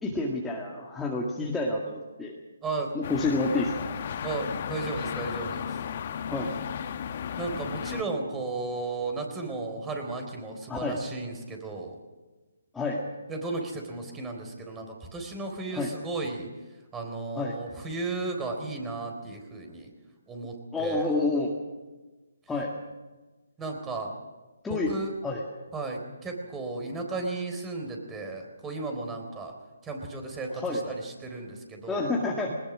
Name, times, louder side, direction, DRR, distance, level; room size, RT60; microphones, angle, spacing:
voice 1, 0.0-2.4 2.9-3.7 6.3-6.5 10.7-11.0 12.7-13.0 15.7-15.9 17.4-17.5 20.7-21.5 22.5-22.7 24.6-24.9 25.2-25.4 30.5-30.8 31.9-32.6, left 2 dB, 5° left, -3 dB, 2.0 m, -28 dB
voice 2, 2.6-2.9 4.2-5.8 7.4-12.0 13.3-16.5 16.9-19.9 20.3-21.1 23.6-24.1 24.7-25.1 25.7-29.5 29.8-32.1, right 3 dB, 10° right, 3 dB, 3.8 m, -34 dB
sound 1, 3.0-8.0, left 8 dB, 45° left, 1.2 m, -34 dB
21.0 x 20.0 x 6.2 m, 1.2 s
figure-of-eight pair, 150°, 0 cm